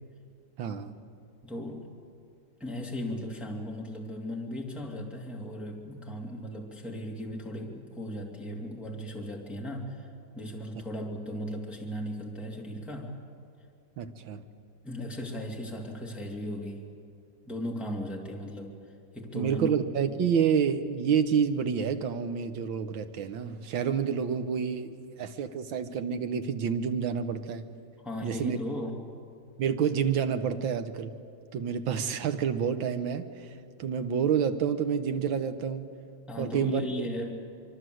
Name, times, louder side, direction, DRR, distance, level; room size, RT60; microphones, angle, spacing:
voice 1, 0.6-0.9 14.0-14.4 19.3-27.6 28.2-28.6 29.6-31.1 31.5-33.5 33.8-35.9 36.4-36.8, right 7 dB, 75° right, 9 dB, 1.9 m, -28 dB
voice 2, 1.4-1.9 2.6-10.1 10.3-13.1 14.8-16.9 17.5-18.7 19.1-19.7 28.0-29.0 36.3-37.3, left 1 dB, ahead, 0 dB, 2.3 m, -37 dB
25.0 x 23.5 x 7.9 m, 2.4 s
omnidirectional pair, 2.2 m